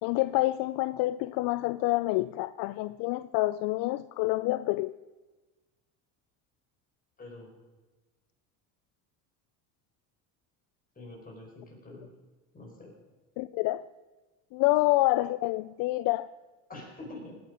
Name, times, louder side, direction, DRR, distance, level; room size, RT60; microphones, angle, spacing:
voice 1, 0.0-5.0 13.4-13.8 14.5-16.3, left 19 dB, 65° left, 15 dB, 0.5 m, -27 dB
voice 2, 7.2-7.5 10.9-12.1 12.5-12.9 16.7-17.4, left 2 dB, 25° left, -1 dB, 5.1 m, -45 dB
19.0 x 8.7 x 5.2 m, 1.2 s
cardioid pair, 115°, 36 cm